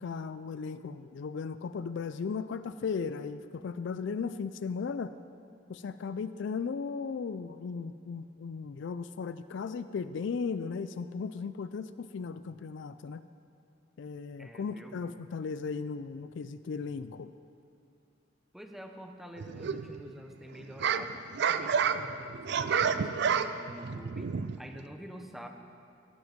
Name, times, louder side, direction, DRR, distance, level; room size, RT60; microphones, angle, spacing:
voice 1, 0.0-5.1 5.7-13.2 14.0-17.3, left 5 dB, 65° left, 13 dB, 0.4 m, -36 dB
voice 2, 14.4-14.9 18.5-25.5, equal, ahead, 4 dB, 0.8 m, -47 dB
sound 1, 19.4-20.1 20.5-24.8, right 6 dB, 60° right, 0.4 m, -30 dB
16.5 x 7.9 x 5.1 m, 2.5 s
head